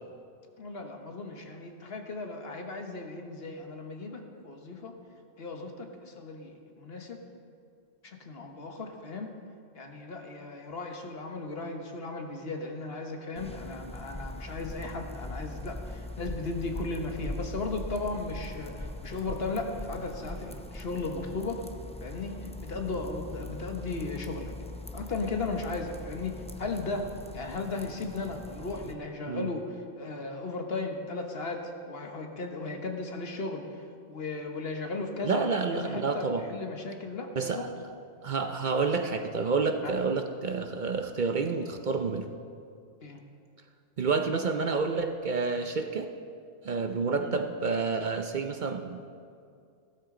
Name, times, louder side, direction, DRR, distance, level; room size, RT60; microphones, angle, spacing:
voice 1, 0.6-5.0 5.4-7.2 8.0-9.3 9.7-21.6 22.0-24.5 24.9-33.7 34.1-37.7 39.8-39.9 43.0-43.2 47.2-47.4, left 3 dB, 65° left, 3 dB, 1.4 m, -36 dB
sound 1, 13.4-28.9, left 1 dB, 10° left, 0.4 m, -41 dB
voice 2, 35.2-36.4 37.4-37.8 38.2-42.3 44.0-46.1 46.6-49.1, right 4 dB, 50° right, 6 dB, 0.7 m, -29 dB
16.0 x 13.0 x 3.8 m, 2.4 s
omnidirectional pair, 1.1 m